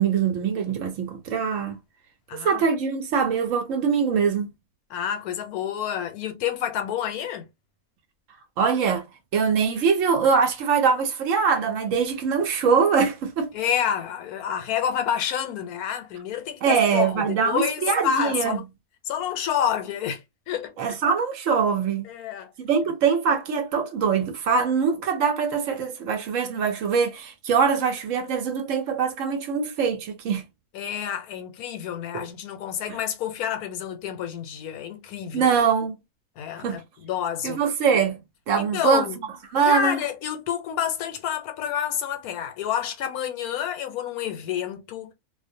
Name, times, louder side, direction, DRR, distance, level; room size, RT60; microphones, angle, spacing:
voice 1, 0.0-1.8 2.4-4.5 8.6-9.1 9.3-13.5 16.6-18.6 20.8-22.1 22.6-30.4 32.1-32.2 32.9-33.0 35.3-36.0 36.6-36.8 37.4-39.1 39.5-40.0, right 6 dB, 65° right, 1.0 m, -23 dB
voice 2, 2.3-2.6 4.9-7.5 13.5-18.6 19.1-20.7 22.0-22.5 30.7-35.5 36.4-37.6 38.6-39.2 39.6-45.1, left 9 dB, 85° left, 1.1 m, -29 dB
2.5 x 2.1 x 2.6 m
omnidirectional pair, 1.6 m